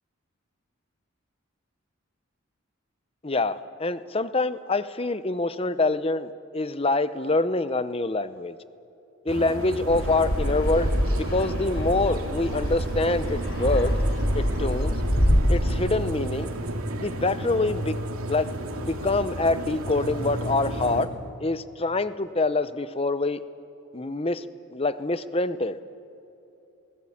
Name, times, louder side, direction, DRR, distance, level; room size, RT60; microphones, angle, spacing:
voice 1, 3.2-8.6 9.2-14.0 14.3-14.9 15.5-16.5 17.0-18.0 18.3-21.1 21.4-23.4 23.9-24.4 24.7-25.8, left 2 dB, 25° left, 13 dB, 0.7 m, -26 dB
sound 1, 9.3-21.0, right 1 dB, 85° right, 2.4 m, -33 dB
Fixed-wing aircraft airplane, 9.9-15.4, equal, 60° left, 3.9 m, -26 dB
27.5 x 20.0 x 8.7 m, 2.9 s
head